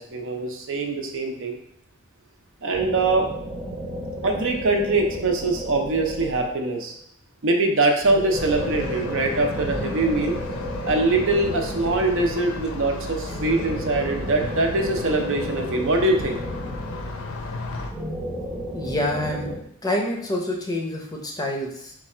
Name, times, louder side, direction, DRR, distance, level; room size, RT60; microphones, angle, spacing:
voice 1, 0.0-1.6 2.6-3.3 4.2-7.0 7.4-10.4 10.8-16.4, right 2 dB, 60° right, 3 dB, 0.6 m, -23 dB
sound 1, 2.7-6.9 8.0-12.7 13.3-17.3 17.9-19.6, equal, 30° right, 0.9 m, -33 dB
sound 2, 8.3-17.9, left 2 dB, 70° left, 0.6 m, -34 dB
voice 2, 18.7-19.5 19.8-21.9, left 1 dB, 15° left, 0 dB, 0.6 m, -27 dB
4.6 x 2.4 x 4.2 m, 0.71 s
head